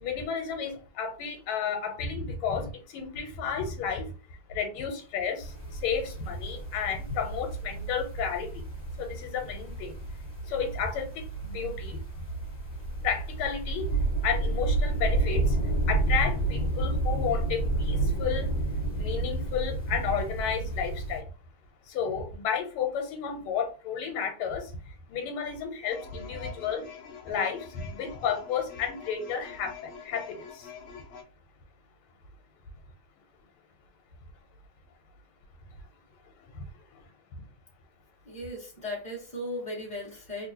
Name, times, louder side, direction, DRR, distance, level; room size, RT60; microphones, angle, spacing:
voice 1, 0.0-4.1 4.5-5.5 5.8-8.5 9.0-9.9 10.5-12.0 13.0-13.9 14.2-15.4 15.9-18.5 19.0-21.2 21.9-24.6 25.1-26.8 27.3-27.6 27.9-29.7 30.0-30.4, left 7 dB, 90° left, 5 dB, 1.6 m, -32 dB
sound 1, 5.4-21.2, right 2 dB, 25° left, 1.3 m, -30 dB
sound 2, 25.9-31.2, left 6 dB, 70° left, 1.4 m, -45 dB
voice 2, 38.2-40.5, left 1 dB, 5° left, -4 dB, 0.9 m, -37 dB
3.5 x 2.5 x 2.7 m, 0.36 s
omnidirectional pair, 2.4 m